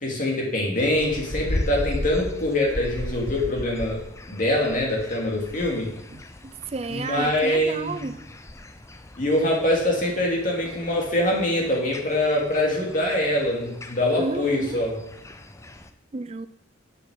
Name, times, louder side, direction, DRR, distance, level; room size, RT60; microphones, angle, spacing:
voice 1, 0.0-4.0 4.3-5.9 6.9-8.0 9.2-14.9, left 1 dB, 45° left, 2.8 m, -24 dB
sound 1, 0.8-15.9, left 1 dB, 15° left, 0.6 m, -37 dB
voice 2, 6.1-8.2 14.2-14.8 16.1-16.5, right 3 dB, 30° right, 0.5 m, -32 dB
7.8 x 6.3 x 7.4 m
head